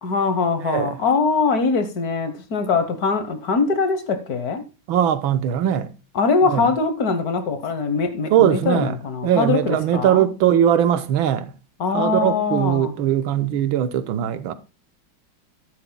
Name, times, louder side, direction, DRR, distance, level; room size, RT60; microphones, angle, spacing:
voice 1, 0.0-4.6 6.1-10.3 11.8-13.0, left 4 dB, 55° left, 1.5 m, -22 dB
voice 2, 4.9-5.9 6.5-6.6 8.3-8.9 9.2-11.5 11.9-14.5, right 10 dB, 80° right, 1.6 m, -20 dB
13.5 x 11.0 x 2.2 m
omnidirectional pair, 2.2 m